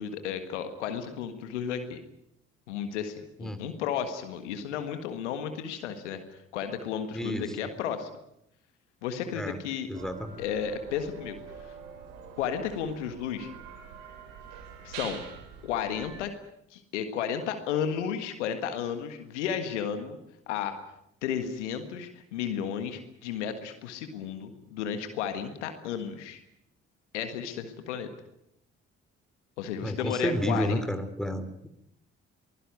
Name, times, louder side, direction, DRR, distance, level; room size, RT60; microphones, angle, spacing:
voice 1, 0.0-2.0 2.7-8.1 9.0-9.9 10.4-11.4 12.4-13.5 14.8-15.2 15.6-16.3 16.7-20.2 20.5-20.8 21.2-26.4 27.1-28.1 29.6-30.8, left 8 dB, 85° left, 8 dB, 1.7 m, -33 dB
voice 2, 7.1-7.6 9.3-9.6 9.9-10.3 29.8-31.7, equal, ahead, 9 dB, 3.3 m, -31 dB
sound 1, 9.9-16.2, right 6 dB, 75° right, 3.3 m, -45 dB
23.0 x 16.0 x 9.5 m, 0.78 s
hypercardioid pair, 40°, 34 cm